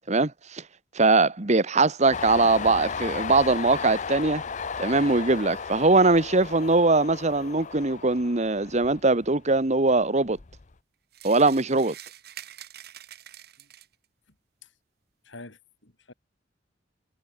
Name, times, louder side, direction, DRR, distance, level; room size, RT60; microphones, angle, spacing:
voice 1, 0.1-0.6 0.9-4.4 4.8-10.4 11.2-11.9, right 3 dB, 40° right, 1.3 m, -21 dB
Train, 2.1-9.5 9.9-10.7, left 5 dB, 40° left, 0.7 m, -35 dB
sound 1, 11.1-14.0, right 11 dB, 60° right, 3.6 m, -45 dB
voice 2, 15.2-16.1, left 2 dB, 85° left, 4.3 m, -46 dB
head